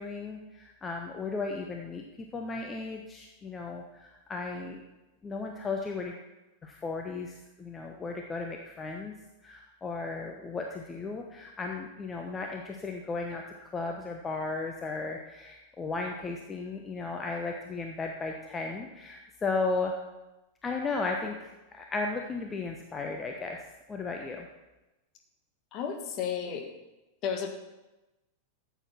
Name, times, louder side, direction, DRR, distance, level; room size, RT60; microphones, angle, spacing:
voice 1, 0.0-4.8 5.2-6.2 6.6-9.1 9.4-19.9 20.6-24.5, left 3 dB, 20° left, 2 dB, 1.1 m, -35 dB
voice 2, 25.7-26.7 27.2-27.5, left 7 dB, 40° left, 4 dB, 1.8 m, -33 dB
14.0 x 8.3 x 4.4 m, 1.0 s
figure-of-eight pair, 90°, 0 cm